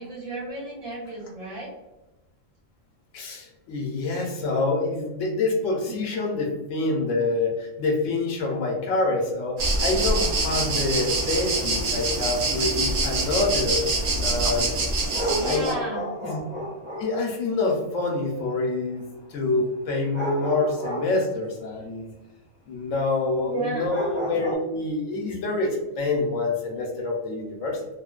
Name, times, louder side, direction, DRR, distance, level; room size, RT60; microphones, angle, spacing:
voice 1, 0.0-1.7 5.9-6.2 15.3-16.0 23.4-23.9, right 2 dB, 90° right, -7 dB, 1.4 m, -33 dB
voice 2, 3.1-13.8 14.2-14.7 15.4-15.7 16.2-16.4 16.9-19.0 19.3-22.1 22.7-27.9, left 3 dB, 80° left, 0 dB, 1.0 m, -26 dB
sound 1, 9.6-15.7, right 2 dB, 60° right, 0.5 m, -25 dB
sound 2, 12.1-12.3 15.1-17.2 20.1-21.2 21.8-21.9 22.1-22.2 22.9-23.0 23.9-24.6, equal, 35° left, 0.6 m, -30 dB
3.0 x 2.1 x 2.3 m, 1.0 s
omnidirectional pair, 1.3 m